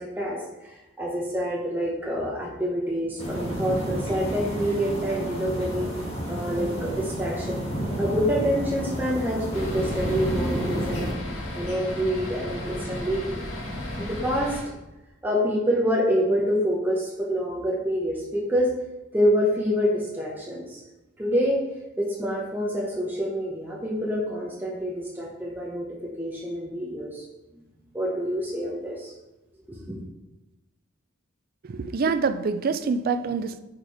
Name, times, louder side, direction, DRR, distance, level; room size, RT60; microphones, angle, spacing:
voice 1, 0.0-5.9 6.3-7.6 8.0-11.1 11.6-13.5 14.0-14.6 15.2-18.7 19.1-20.8 21.2-21.6 22.0-25.8 26.2-27.2 27.9-29.1 29.7-30.0, equal, 10° right, 0.8 m, -27 dB
sound 1, 3.2-11.1, equal, 30° left, 1.5 m, -30 dB
sound 2, 9.5-14.6, left 1 dB, 85° left, 1.6 m, -34 dB
voice 2, 31.6-33.6, right 5 dB, 45° right, 0.4 m, -26 dB
4.9 x 4.4 x 4.7 m
head